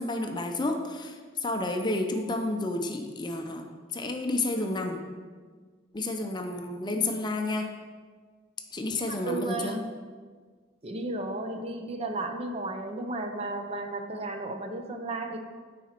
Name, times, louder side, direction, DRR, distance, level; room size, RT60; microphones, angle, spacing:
voice 1, 0.0-3.6 3.9-5.0 5.9-7.7 8.7-9.8, left 2 dB, 25° left, 4 dB, 0.5 m, -30 dB
voice 2, 9.0-10.0 10.8-15.4, right 2 dB, 30° right, 5 dB, 0.6 m, -34 dB
9.6 x 4.2 x 4.4 m, 1.5 s
head